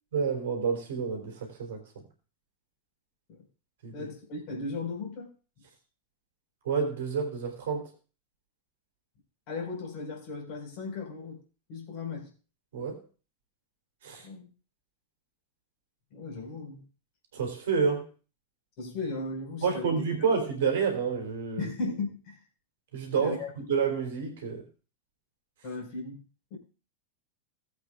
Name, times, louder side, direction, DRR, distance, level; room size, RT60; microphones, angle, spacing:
voice 1, 0.1-2.0 3.8-4.1 6.6-7.9 12.7-13.0 14.0-14.3 17.3-18.0 19.6-21.7 22.9-24.6, right 6 dB, 60° right, 3.5 m, -29 dB
voice 2, 3.9-5.3 9.5-11.4 11.7-12.3 14.2-14.5 16.1-16.8 18.8-19.9 21.6-22.4 23.2-23.5 25.6-26.2 26.5-26.6, left 3 dB, 45° left, 5.0 m, -36 dB
20.0 x 8.2 x 2.4 m
figure-of-eight pair, 90°, 0 cm